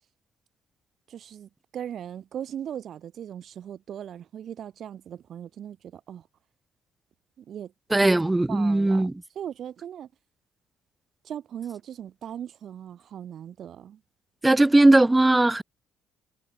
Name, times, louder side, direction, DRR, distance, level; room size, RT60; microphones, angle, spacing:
voice 1, 1.1-6.2 7.4-8.0 8.5-9.1 9.4-10.1 11.2-14.0, right 9 dB, 55° right, 4.1 m, -38 dB
voice 2, 7.9-9.1 14.4-15.6, right 2 dB, 10° right, 0.6 m, -19 dB
cardioid pair, 120°, 0 cm